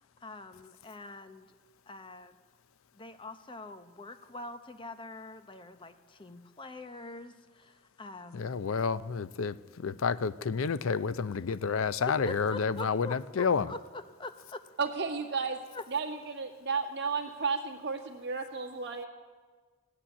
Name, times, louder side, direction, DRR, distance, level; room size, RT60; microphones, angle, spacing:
voice 1, 0.2-1.5 1.9-2.3 3.0-8.6 12.2-14.6 15.7-15.8, left 2 dB, 25° left, 9 dB, 0.8 m, -44 dB
voice 2, 8.3-13.7, left 5 dB, 75° left, 16 dB, 0.5 m, -30 dB
voice 3, 14.8-15.6 15.9-19.1, right 5 dB, 55° right, 2 dB, 1.9 m, -33 dB
16.5 x 8.7 x 10.0 m, 1.5 s
head